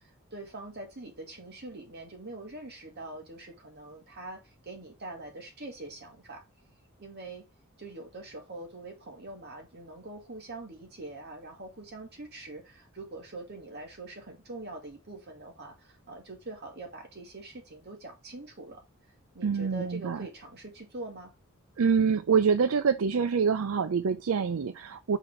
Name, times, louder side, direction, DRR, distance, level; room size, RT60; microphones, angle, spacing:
voice 1, 0.0-6.4 7.0-7.4 7.8-18.8 19.3-21.3, right 2 dB, 50° right, 2.4 m, -44 dB
voice 2, 19.4-20.3 21.8-25.2, right 6 dB, 75° right, 0.5 m, -26 dB
5.9 x 4.0 x 4.3 m
head